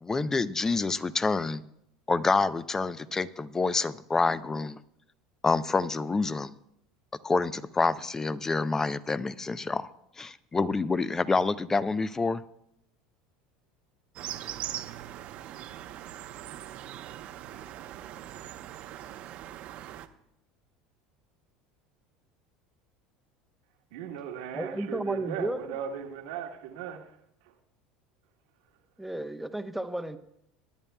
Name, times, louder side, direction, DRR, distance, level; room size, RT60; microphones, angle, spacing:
voice 1, 0.0-1.6 2.1-4.8 5.4-6.5 7.2-9.9 10.2-12.4, left 3 dB, 20° left, 0.6 m, -27 dB
sound 1, 14.2-20.1, right 12 dB, 55° right, 0.8 m, -41 dB
voice 2, 23.9-27.2 27.4-27.5, right 8 dB, 70° right, 1.3 m, -37 dB
voice 3, 24.5-25.6 29.0-30.2, right 1 dB, 5° right, 0.9 m, -33 dB
22.0 x 11.0 x 2.3 m
hypercardioid pair, 80°, 3 cm